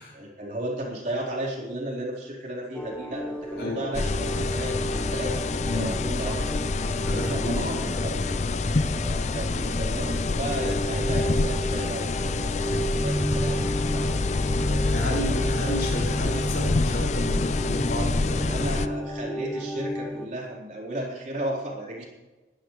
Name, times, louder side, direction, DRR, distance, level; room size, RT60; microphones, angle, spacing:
voice 1, 0.1-6.4 7.3-8.4 8.9-15.7 18.2-22.0, right 1 dB, 40° right, -3 dB, 4.3 m, -35 dB
sound 1, 2.7-20.3, equal, 5° left, 0.9 m, -32 dB
sound 2, 3.9-18.9, left 3 dB, 40° left, 0.5 m, -27 dB
voice 2, 5.6-5.9 7.0-8.2 14.6-18.7, equal, 60° left, -4 dB, 5.8 m, -32 dB
22.0 x 12.0 x 3.3 m, 1.2 s
head